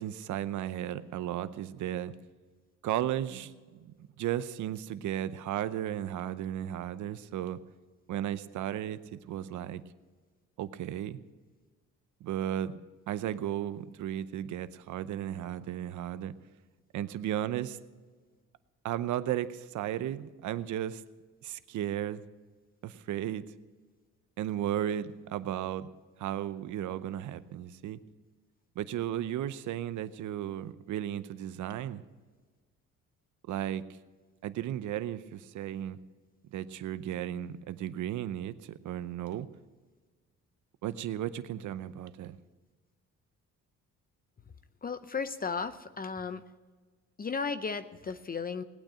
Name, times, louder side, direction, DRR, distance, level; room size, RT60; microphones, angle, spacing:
voice 1, 0.0-2.1 2.8-7.6 8.1-9.8 10.6-11.2 12.2-12.8 13.1-16.3 16.9-17.8 18.8-21.0 21.4-22.2 22.8-23.4 24.4-25.9 26.2-28.0 28.8-32.0 33.5-33.8 34.4-36.0 36.5-39.5 40.8-42.4, right 11 dB, 75° right, 0.8 m, -35 dB
voice 2, 44.8-46.4 47.2-48.6, left 5 dB, 30° left, 0.7 m, -35 dB
18.5 x 9.0 x 6.3 m
cardioid pair, 90°, 30 cm